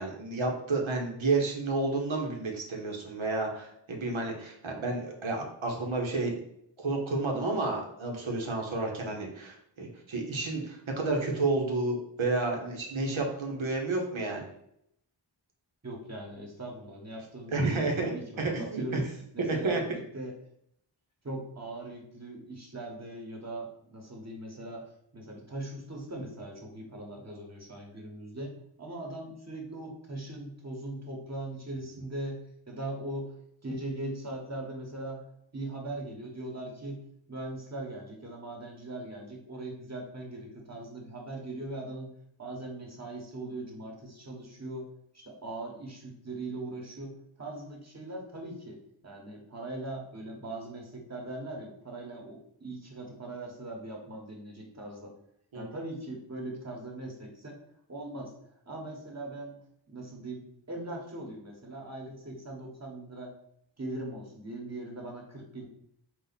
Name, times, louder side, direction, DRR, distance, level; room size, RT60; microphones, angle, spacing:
voice 1, 0.0-6.3 6.8-14.5 17.5-18.1 18.4-19.0 19.4-19.8 55.5-55.7, right 3 dB, 85° right, 0 dB, 1.1 m, -30 dB
voice 2, 15.8-20.3 21.2-28.5 28.8-33.3 33.6-35.2 35.5-37.0 37.3-42.1 42.4-44.9 45.1-55.1 55.5-57.6 57.9-58.3 58.6-59.6 59.9-63.3 63.8-65.7, right 2 dB, 35° right, 0 dB, 1.2 m, -40 dB
4.1 x 2.5 x 4.1 m, 0.73 s
wide cardioid pair, 70°, 47 cm